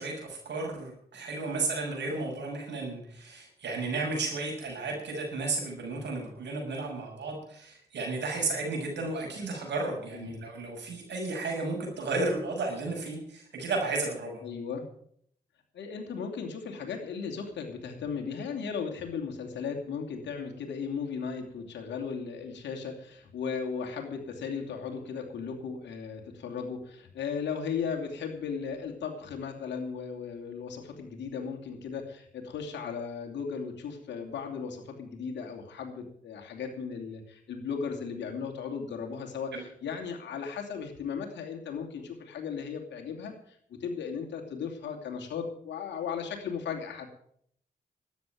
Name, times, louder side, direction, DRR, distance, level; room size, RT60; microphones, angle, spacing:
voice 1, 0.0-14.4 39.5-39.6, right 3 dB, 70° right, 1 dB, 6.6 m, -33 dB
voice 2, 14.4-14.8 15.7-47.1, left 6 dB, 70° left, 1 dB, 2.8 m, -36 dB
13.0 x 9.5 x 9.2 m, 0.66 s
hypercardioid pair, 40°, 19 cm